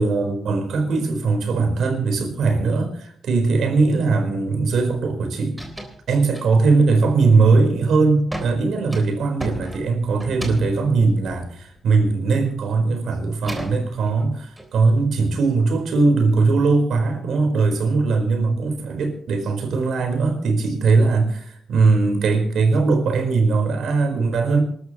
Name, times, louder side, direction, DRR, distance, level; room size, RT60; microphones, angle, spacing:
voice 1, 0.0-5.6 6.1-24.6, right 4 dB, 80° right, 5 dB, 4.5 m, -20 dB
sound 1, 4.9-5.2 5.4-6.0 6.3-6.8 7.3-7.7 8.3-12.3 12.7-14.7, equal, 5° right, 3.4 m, -35 dB
27.0 x 13.0 x 3.1 m, 0.64 s
wide cardioid pair, 135°, 0 cm